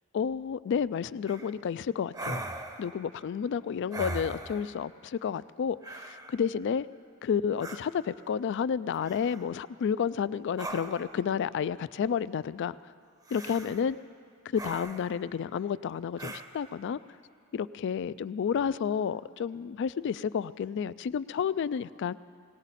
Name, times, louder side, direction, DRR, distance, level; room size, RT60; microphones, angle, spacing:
voice 1, 0.1-2.5 2.8-6.9 7.2-12.8 13.3-14.0 14.5-17.0 17.5-22.2, left 7 dB, 60° left, 17 dB, 0.3 m, -31 dB
sound 1, 1.3-1.5 2.1-3.0 3.9-4.8 5.8-6.4 7.6-7.8 9.0-9.5 10.6-11.2 13.3-13.9 14.5-15.2 16.2-16.5, right 2 dB, 20° right, 0.7 m, -39 dB
19.5 x 18.0 x 4.1 m, 2.4 s
head